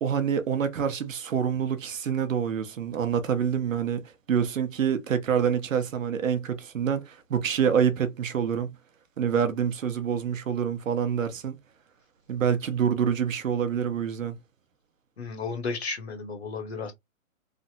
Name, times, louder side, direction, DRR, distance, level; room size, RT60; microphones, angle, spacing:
voice 1, 0.0-8.7 9.2-11.6 12.3-14.4, right 7 dB, 65° right, 0.8 m, -26 dB
voice 2, 15.2-16.9, left 4 dB, 50° left, 0.8 m, -33 dB
3.3 x 2.0 x 2.7 m
hypercardioid pair, 180°, 41 cm